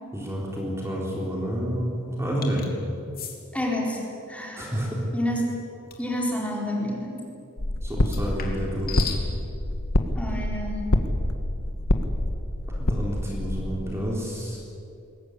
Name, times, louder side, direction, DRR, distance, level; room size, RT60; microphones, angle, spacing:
voice 1, 0.1-2.6 4.6-5.1 7.8-9.0 12.8-14.6, equal, 10° right, -3 dB, 3.9 m, -29 dB
sound 1, 2.4-2.7 3.1-3.4 5.9-6.1 8.0-9.2, left 7 dB, 45° left, 3.3 m, -35 dB
voice 2, 3.5-4.0 4.3-4.7 5.1-5.5 6.0-7.2 10.2-10.9, equal, 5° left, -2 dB, 4.3 m, -28 dB
sound 2, 7.6-13.8, left 1 dB, 80° left, 1.6 m, -26 dB
22.5 x 19.0 x 9.9 m, 2.6 s
head